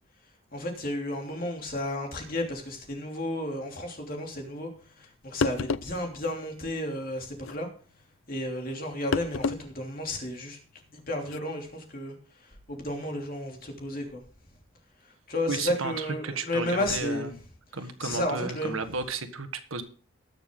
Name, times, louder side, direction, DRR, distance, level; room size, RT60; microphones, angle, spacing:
voice 1, 0.5-4.7 5.0-7.7 8.3-10.6 10.9-14.2 15.0-17.3 18.0-18.7, left 1 dB, 45° left, 2 dB, 3.0 m, -33 dB
sound 1, 5.0-5.1 5.4-6.0 7.4-7.6 9.1-9.6 10.0-10.1 11.2-11.4, left 4 dB, 70° left, 0.5 m, -29 dB
voice 2, 15.5-17.3 17.7-19.8, right 4 dB, 80° right, 9 dB, 1.5 m, -33 dB
20.0 x 7.0 x 3.8 m, 0.41 s
head